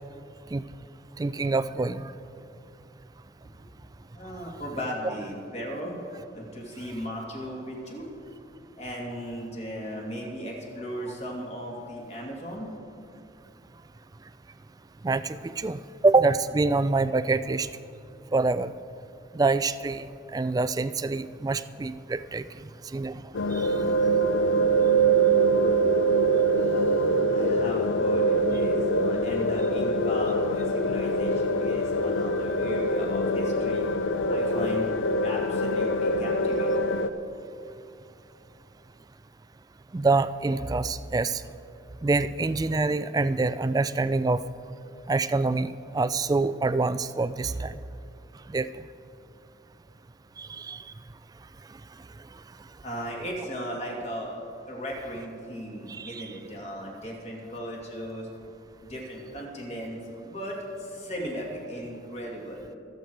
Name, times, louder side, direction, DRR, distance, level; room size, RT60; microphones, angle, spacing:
voice 1, 1.2-2.1 15.0-17.7 18.3-18.7 19.3-23.1 23.5-23.7 39.9-41.4 42.0-44.4 45.1-47.8 48.5-48.7 50.4-50.8 55.9-56.3, right 3 dB, 20° right, 14 dB, 0.3 m, -26 dB
voice 2, 4.1-6.0 6.3-8.1 8.8-12.7 26.6-33.9 34.3-34.9 35.2-36.9 52.8-54.3 54.7-58.3 58.8-62.8, equal, 35° left, -1 dB, 2.5 m, -37 dB
sound 1, 23.3-37.1, right 2 dB, 80° left, 0.6 m, -24 dB
23.5 x 8.1 x 4.7 m, 2.6 s
head